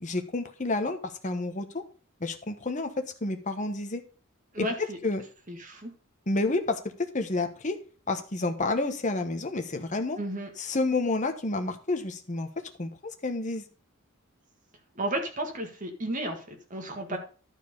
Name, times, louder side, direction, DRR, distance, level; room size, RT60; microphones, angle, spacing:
voice 1, 0.0-1.8 2.2-4.0 4.6-4.7 5.0-5.2 6.3-6.8 7.1-7.8 8.1-10.2 10.6-12.5 12.8-12.9 13.2-13.6 17.1-17.2, left 2 dB, 35° left, 7 dB, 1.2 m, -29 dB
voice 2, 4.5-5.0 5.5-5.9 10.2-10.5 15.0-17.2, right 1 dB, 40° right, 4 dB, 1.8 m, -33 dB
12.0 x 4.6 x 5.3 m, 0.38 s
head